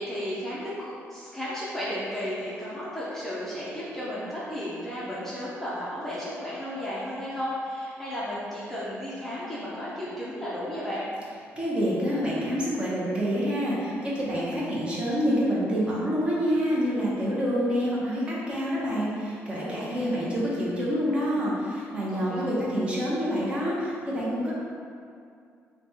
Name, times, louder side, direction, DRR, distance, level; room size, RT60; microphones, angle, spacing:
voice 1, 0.0-11.1 22.1-22.6, equal, 5° left, -9 dB, 0.6 m, -34 dB
voice 2, 11.6-24.5, equal, 20° right, -7 dB, 0.8 m, -27 dB
3.2 x 2.2 x 4.1 m, 2.4 s
cardioid pair, 125°, 5 cm